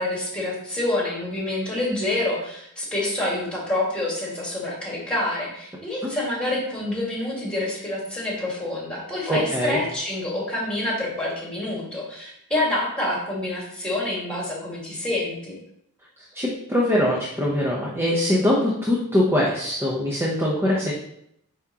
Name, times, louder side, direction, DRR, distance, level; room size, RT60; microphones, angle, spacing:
voice 1, 0.0-15.6, left 1 dB, 5° left, -4 dB, 2.0 m, -27 dB
voice 2, 9.3-9.8 16.3-20.9, left 1 dB, 10° right, -4 dB, 0.9 m, -22 dB
8.7 x 3.6 x 2.9 m, 0.75 s
head